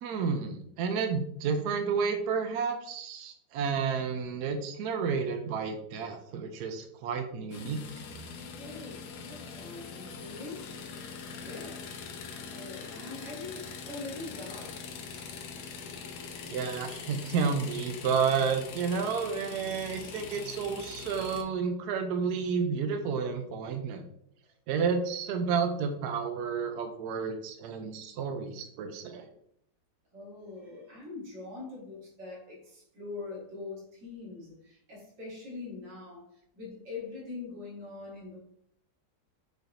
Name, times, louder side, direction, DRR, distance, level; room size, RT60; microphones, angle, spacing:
voice 1, 0.0-7.8 16.5-24.0 24.7-29.2, right 5 dB, 70° right, 6 dB, 1.0 m, -31 dB
sound 1, 7.5-21.4, left 5 dB, 75° left, 1.2 m, -43 dB
voice 2, 8.6-10.7 11.4-11.9 12.5-14.9 30.1-38.4, left 3 dB, 45° right, -5 dB, 1.9 m, -43 dB
4.8 x 4.2 x 2.5 m, 0.68 s
omnidirectional pair, 1.9 m